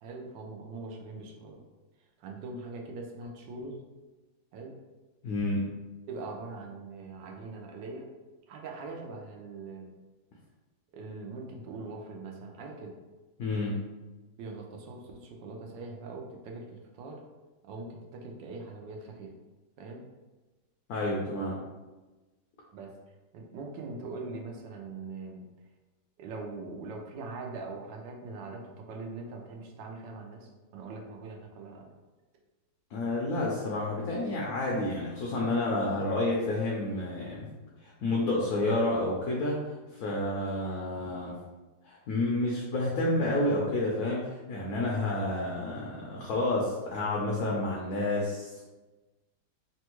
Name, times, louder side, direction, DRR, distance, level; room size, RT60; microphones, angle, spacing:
voice 1, 0.0-1.6 2.2-3.8 4.5-4.7 6.1-8.1 8.5-9.9 10.9-13.0 14.4-17.2 17.6-19.3 19.8-20.0 22.7-22.9 23.3-25.4 26.2-31.9, right 3 dB, 80° right, 0 dB, 1.2 m, -42 dB
voice 2, 5.2-5.8 13.4-13.9 20.9-21.6 32.9-37.5 37.8-39.6 39.9-41.4 41.8-48.6, left 2 dB, 70° left, -3 dB, 0.9 m, -30 dB
3.4 x 2.2 x 2.9 m, 1.2 s
omnidirectional pair, 1.9 m